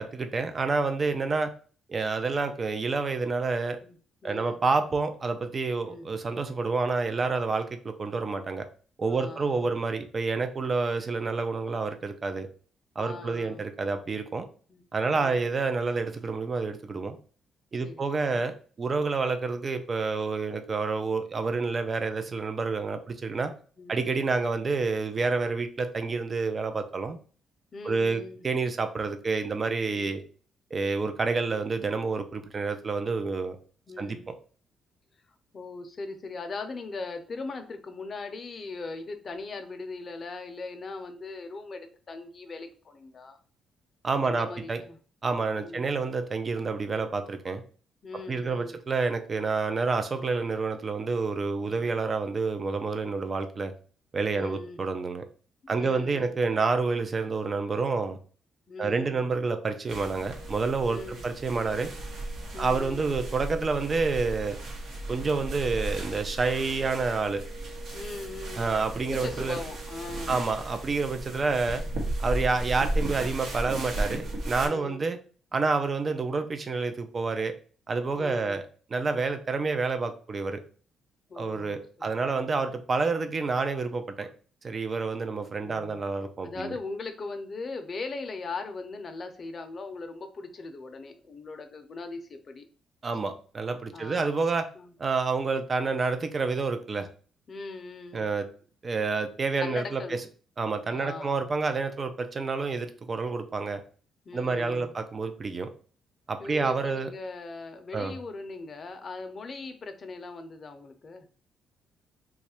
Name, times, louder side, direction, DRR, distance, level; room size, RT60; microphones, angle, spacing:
voice 1, 0.0-1.5 1.9-3.8 4.2-8.6 9.0-12.5 13.0-14.4 14.9-17.2 17.7-18.5 18.8-23.5 23.9-27.2 27.8-30.2 30.7-33.6 34.0-34.3 44.0-44.8 45.2-47.6 48.3-53.7 54.1-55.2 55.7-58.2 58.8-61.9 62.6-64.6 65.1-67.4 68.6-69.6 70.3-71.8 72.2-75.2 75.5-77.5 77.9-78.6 78.9-80.6 81.4-84.3 84.6-86.7 93.0-94.6 95.0-97.1 98.1-98.5 98.8-100.2 100.6-103.8 104.3-105.7 106.3-107.1 107.9-108.1, right 4 dB, 35° right, 8 dB, 0.5 m, -28 dB
voice 2, 4.2-4.6 5.8-6.1 9.1-9.7 13.0-13.6 14.7-15.5 17.8-18.4 23.8-24.0 27.7-28.5 33.9-34.3 35.5-43.4 44.2-45.0 45.6-45.9 48.0-48.8 54.3-54.8 55.6-56.4 58.7-59.3 60.8-61.3 62.5-63.1 67.9-68.8 69.1-70.4 74.6-75.1 78.1-78.6 81.3-82.5 85.6-86.1 86.4-92.6 93.9-94.4 94.7-94.9 97.5-98.3 99.6-100.2 100.9-101.3 104.3-105.0 106.4-111.3, left 3 dB, 40° left, 6 dB, 0.6 m, -40 dB
sound 1, 59.9-74.7, right 1 dB, 75° right, 1.0 m, -35 dB
3.1 x 2.4 x 4.3 m, 0.41 s
cardioid pair, 90°, 0 cm